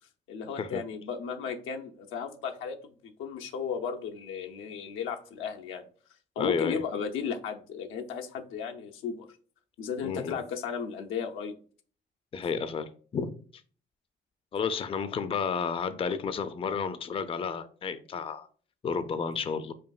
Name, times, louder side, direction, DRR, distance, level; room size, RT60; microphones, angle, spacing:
voice 1, 0.3-5.8 6.4-9.3 9.8-11.5, left 6 dB, 90° left, 0.6 m, -35 dB
voice 2, 6.4-6.8 10.0-10.4 12.3-13.4 14.5-18.5 18.8-19.7, left 6 dB, 30° left, 0.4 m, -31 dB
5.1 x 2.6 x 2.3 m
cardioid pair, 90°, 20 cm